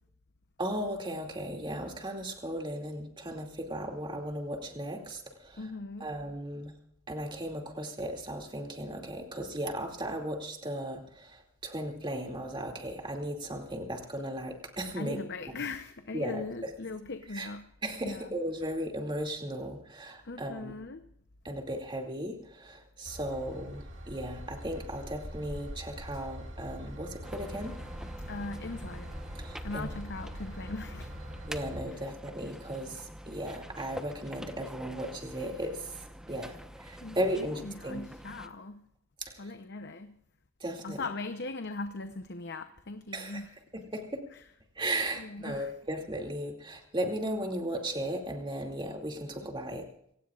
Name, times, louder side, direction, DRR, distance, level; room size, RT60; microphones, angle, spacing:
voice 1, 0.6-5.7 6.0-6.7 7.1-15.2 16.1-16.7 17.3-17.5 17.8-20.7 21.4-27.7 29.4-29.9 31.5-38.0 39.2-39.5 40.6-41.1 43.1-43.4 43.7-44.2 44.8-49.8, right 1 dB, 25° right, 2.5 m, -36 dB
voice 2, 5.6-6.1 15.0-17.7 18.0-18.3 20.2-21.0 28.3-29.2 29.6-31.1 37.0-38.9 39.4-40.2 40.8-43.5 45.2-45.7, left 3 dB, 55° left, 0.8 m, -39 dB
Train / Engine, 23.1-31.8, equal, 60° right, 2.3 m, -43 dB
sound 1, 27.2-38.5, equal, 5° right, 1.0 m, -46 dB
26.5 x 18.0 x 2.5 m
head